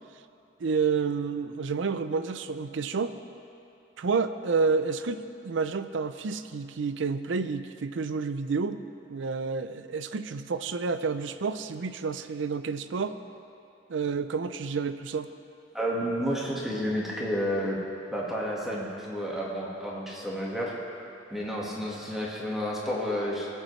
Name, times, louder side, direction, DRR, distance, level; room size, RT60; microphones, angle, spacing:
voice 1, 0.6-3.1 4.0-8.8 9.1-13.2 13.9-15.3, right 5 dB, 80° right, 11 dB, 0.5 m, -29 dB
voice 2, 15.7-17.8 18.1-20.8 21.3-23.5, equal, ahead, -5 dB, 1.6 m, -31 dB
20.5 x 7.6 x 3.2 m, 2.7 s
head